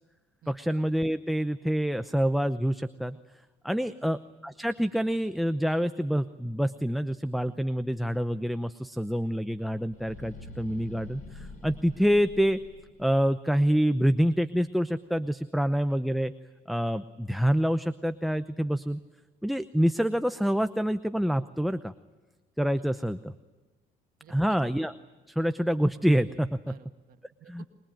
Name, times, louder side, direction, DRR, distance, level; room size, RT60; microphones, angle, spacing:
voice 1, 0.5-3.2 3.6-12.6 13.0-16.3 16.7-19.0 19.4-21.9 22.6-23.3 24.3-24.9 25.3-26.6 27.5-27.6, equal, ahead, 10 dB, 0.7 m, -27 dB
sound 1, 9.9-13.1, left 2 dB, 50° left, 7.2 m, -46 dB
voice 2, 24.2-24.6 26.7-27.7, right 10 dB, 60° right, 6 dB, 2.0 m, -52 dB
25.5 x 22.0 x 9.0 m, 1.3 s
cardioid pair, 110°, 17 cm